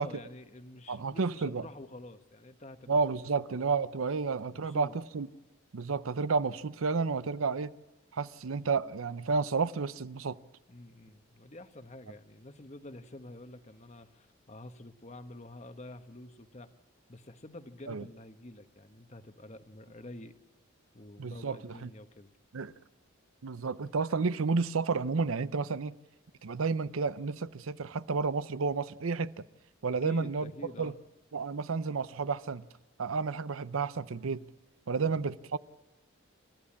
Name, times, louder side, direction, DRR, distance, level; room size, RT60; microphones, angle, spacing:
voice 1, 0.0-3.3 4.5-4.9 10.7-16.7 17.1-20.3 20.9-22.3 30.0-31.0 34.9-35.2, left 1 dB, 35° left, 1.1 m, -48 dB
voice 2, 0.9-1.6 2.9-5.3 5.7-7.7 8.1-10.4 17.9-18.0 21.2-21.9 22.5-22.7 23.4-25.9 26.4-29.3 29.8-30.5 30.8-30.9 31.3-32.7 33.0-34.5 34.9-35.6, right 4 dB, 80° right, 0.6 m, -31 dB
28.5 x 14.0 x 8.6 m
head